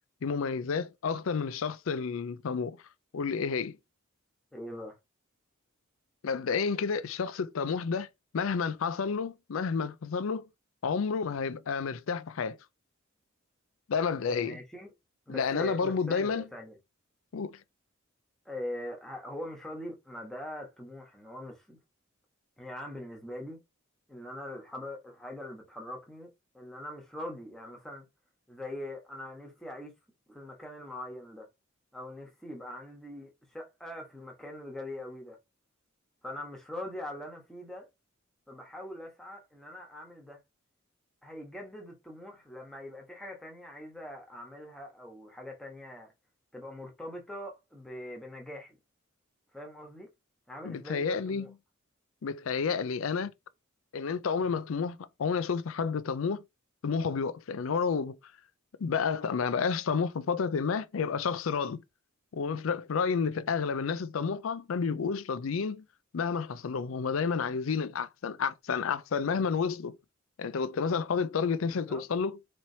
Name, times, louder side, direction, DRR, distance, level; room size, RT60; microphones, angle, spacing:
voice 1, 0.2-2.8 3.1-3.8 6.2-8.1 8.3-10.5 10.8-12.6 13.9-14.6 15.3-16.5 17.3-17.6 50.6-51.5 52.2-53.3 53.9-56.4 56.8-58.2 58.8-61.8 62.3-65.9 66.1-70.0 70.4-72.4, left 5 dB, 75° left, 0.4 m, -30 dB
voice 2, 4.5-5.0 14.3-14.9 15.3-16.8 18.4-21.8 22.6-23.6 24.1-26.3 26.5-28.1 28.5-29.9 30.3-31.5 31.9-35.4 36.2-37.9 38.5-40.4 41.2-46.1 46.5-48.8 49.5-50.1 50.5-51.5 54.4-54.6 71.6-72.1, left 1 dB, ahead, 1.2 m, -42 dB
4.3 x 3.1 x 2.7 m
head